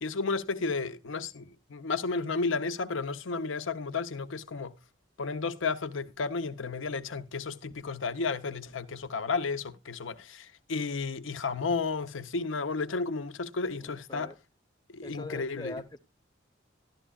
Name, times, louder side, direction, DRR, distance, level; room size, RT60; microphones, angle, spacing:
voice 1, 0.0-4.7 5.2-14.3 14.9-15.7, left 4 dB, 85° left, 0.8 m, -32 dB
voice 2, 13.8-14.4 15.0-16.0, left 2 dB, 20° left, 0.7 m, -42 dB
12.5 x 12.0 x 2.4 m
head